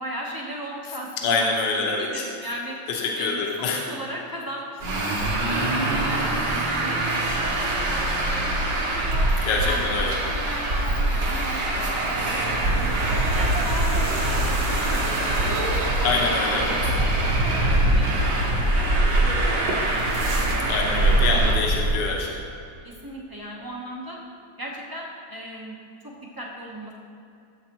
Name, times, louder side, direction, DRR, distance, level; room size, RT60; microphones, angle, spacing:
voice 1, 0.0-2.8 3.2-5.0 5.4-7.6 7.9-9.3 9.6-12.4 12.7-16.0 16.5-16.9 17.2-18.9 19.2-19.4 19.6-21.7 22.8-24.2 24.6-25.8 26.0-26.9, equal, 20° right, -3 dB, 0.5 m, -37 dB
voice 2, 1.2-2.2 2.9-3.8 9.4-10.2 16.0-16.9 20.7-22.3, left 4 dB, 65° left, 0 dB, 1.5 m, -25 dB
Traffic noise roadway noise, 4.8-21.5, right 1 dB, 60° right, 1.7 m, -24 dB
sound 1, 11.9-22.3, right 2 dB, 80° right, 2.2 m, -27 dB
13.5 x 7.3 x 3.0 m, 2.7 s
omnidirectional pair, 2.1 m